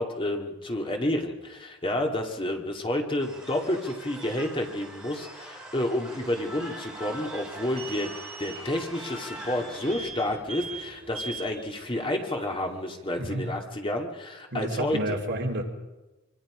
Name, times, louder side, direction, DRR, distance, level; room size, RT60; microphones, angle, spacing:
voice 1, 0.0-8.1 8.4-15.2, left 1 dB, 25° left, 2 dB, 2.4 m, -30 dB
sound 1, 3.2-9.9, equal, 5° right, 5.7 m, -43 dB
sound 2, 6.3-13.6, right 3 dB, 30° right, 3.0 m, -43 dB
voice 2, 14.5-15.6, right 1 dB, 55° right, 2 dB, 3.4 m, -29 dB
26.0 x 25.0 x 5.1 m, 1.1 s
head